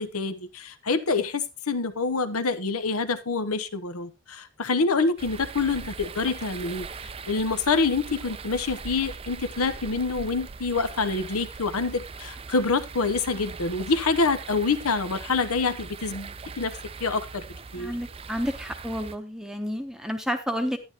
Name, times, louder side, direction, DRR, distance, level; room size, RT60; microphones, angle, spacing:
voice 1, 0.0-6.9 7.3-16.7 17.0-17.4 17.7-17.9, left 4 dB, 85° left, 12 dB, 1.0 m, -26 dB
sound 1, 5.2-19.2, right 4 dB, 25° right, 0.4 m, -40 dB
voice 2, 17.7-20.8, equal, 5° right, 6 dB, 0.8 m, -30 dB
11.5 x 10.0 x 2.9 m, 0.25 s
head